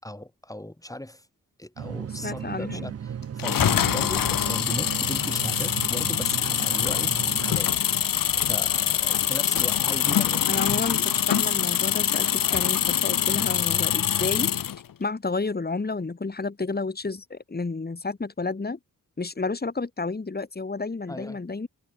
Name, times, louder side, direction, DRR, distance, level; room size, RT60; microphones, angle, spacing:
voice 1, 0.0-1.3 1.6-7.7 8.4-10.5 10.8-11.1 21.1-21.4, left 1 dB, 10° left, 6.2 m, -38 dB
sound 1, 1.8-7.5, right 8 dB, 45° right, 0.5 m, -35 dB
voice 2, 2.2-2.9 10.5-14.5 15.0-18.8 19.2-21.7, left 3 dB, 25° left, 2.1 m, -31 dB
sound 2, 3.4-14.8, left 9 dB, 70° left, 0.9 m, -24 dB
sound 3, 7.9-14.5, left 7 dB, 85° left, 5.9 m, -50 dB
wide cardioid pair, 100°, 35 cm